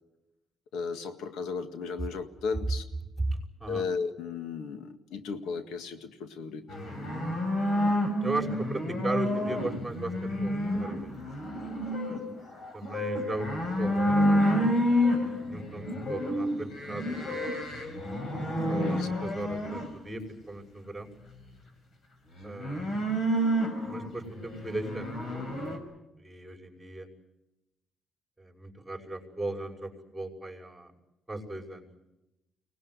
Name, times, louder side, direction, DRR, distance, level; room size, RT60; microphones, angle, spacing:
voice 1, 0.7-2.8 3.7-6.7 18.8-19.1 19.5-19.6, left 5 dB, 85° left, 8 dB, 1.9 m, -35 dB
voice 2, 3.2-3.8 8.2-11.1 12.7-14.7 15.5-17.5 18.7-21.1 22.4-23.2 23.8-25.1 26.2-27.1 28.4-30.9 31.3-31.9, right 2 dB, 10° right, 1 dB, 5.7 m, -37 dB
sound 1, 6.7-19.9 22.4-25.8, equal, 55° left, 5.7 m, -29 dB
24.0 x 19.5 x 9.6 m, 0.93 s
cardioid pair, 90°, 0 cm